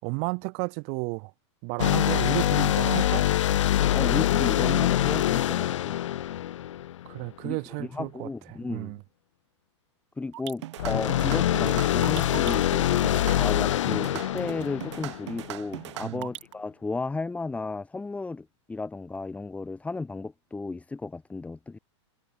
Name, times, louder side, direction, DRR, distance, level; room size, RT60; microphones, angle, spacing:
voice 1, 0.0-1.3 1.6-3.3 7.1-8.3 8.6-9.0 16.0-16.3, right 40 dB or more, 50° right, 4.4 m, -32 dB
sound 1, 1.8-7.3 10.8-15.5, left 12 dB, 85° left, 0.9 m, -24 dB
voice 2, 3.9-6.0 7.4-9.0 10.2-21.8, left 3 dB, 10° left, 3.8 m, -34 dB
sound 2, 10.3-16.5, right 15 dB, 70° right, 6.5 m, -39 dB
supercardioid pair, 135°, 15 cm